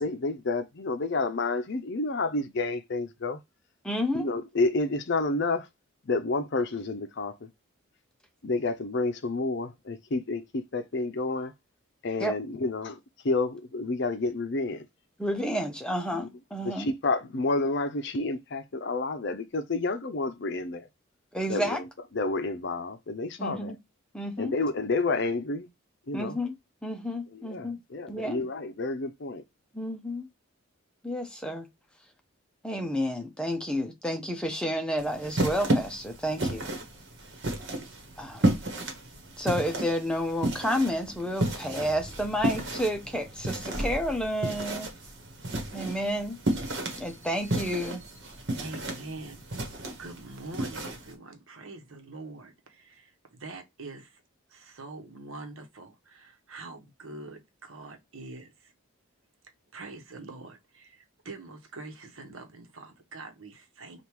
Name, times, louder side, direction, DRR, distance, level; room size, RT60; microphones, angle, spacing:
voice 1, 0.0-3.4 4.1-5.7 6.0-7.5 8.4-11.5 12.0-13.0 13.2-14.9 16.1-16.3 16.6-20.9 21.5-21.9 22.1-23.7 24.4-25.7 26.1-26.4 27.3-29.4, left 3 dB, 55° left, 0.6 m, -30 dB
voice 2, 3.8-4.3 12.2-12.3 15.2-16.9 21.3-21.8 23.4-23.8 24.1-24.6 26.1-26.5 26.8-27.8 28.1-28.5 29.7-30.3 31.0-31.7 32.6-36.7 38.2-38.4 39.4-44.9 45.7-46.4 47.0-48.0, equal, 5° left, 0.7 m, -30 dB
sound 1, 35.0-51.1, right 1 dB, 55° right, 1.3 m, -32 dB
sound 2, 40.8-49.5, equal, 15° right, 1.0 m, -45 dB
voice 3, 48.6-49.7 50.0-54.2 54.5-58.7 59.7-64.0, right 2 dB, 75° right, 1.0 m, -44 dB
3.5 x 2.5 x 4.4 m
head